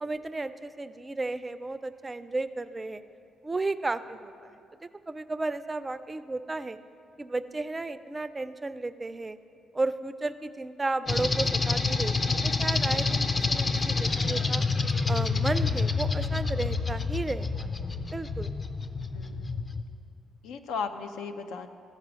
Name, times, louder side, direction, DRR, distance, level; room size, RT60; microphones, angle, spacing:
voice 1, 0.0-3.0 3.4-4.6 5.1-6.8 7.2-9.4 9.7-14.6 15.1-17.7 18.1-18.5, right 2 dB, 20° right, 12 dB, 0.4 m, -33 dB
sound 1, 11.1-19.8, left 4 dB, 35° left, 0.5 m, -28 dB
voice 2, 19.1-19.7 20.4-21.7, left 5 dB, 90° left, 8 dB, 0.5 m, -36 dB
14.5 x 5.0 x 6.2 m, 2.5 s
cardioid pair, 90°, 0 cm